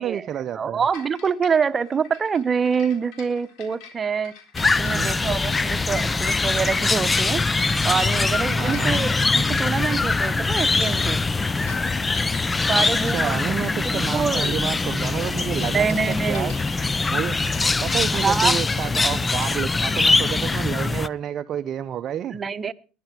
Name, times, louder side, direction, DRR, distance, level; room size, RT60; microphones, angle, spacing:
voice 1, 0.0-0.8 4.8-5.1 8.6-9.0 12.7-16.6 17.1-17.4 17.8-22.4, right 9 dB, 45° right, 10 dB, 0.7 m, -30 dB
voice 2, 0.5-4.3 4.8-7.4 7.8-11.2 12.7-13.4 13.8-14.5 15.7-16.5 18.1-18.6 22.3-22.7, right 6 dB, 30° right, 11 dB, 1.1 m, -25 dB
sound 1, 0.9-19.7, left 7 dB, 60° left, 4.0 m, -45 dB
sound 2, 4.5-21.1, left 3 dB, 20° left, 0.7 m, -23 dB
20.5 x 11.0 x 4.6 m, 0.37 s
hypercardioid pair, 75°, 0 cm